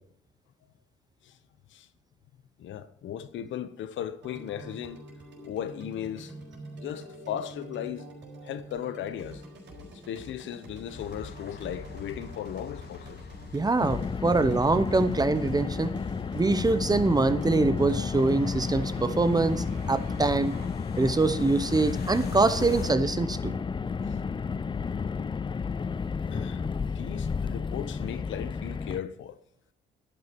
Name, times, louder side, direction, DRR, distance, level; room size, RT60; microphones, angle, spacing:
voice 1, 2.6-5.0 5.4-6.3 6.8-8.1 8.4-9.4 10.1-13.2 24.1-24.2 26.3-29.4, left 10 dB, 75° left, 0.9 m, -37 dB
sound 1, 4.2-20.7, right 1 dB, 65° right, 4.4 m, -46 dB
sound 2, 10.9-22.9, left 6 dB, 50° left, 1.5 m, -44 dB
voice 2, 13.5-15.9 16.3-20.6 21.0-23.5, right 3 dB, 20° right, 0.8 m, -24 dB
Car, 13.8-29.0, left 5 dB, 25° left, 0.5 m, -32 dB
12.0 x 9.5 x 4.5 m
cardioid pair, 90°, 20 cm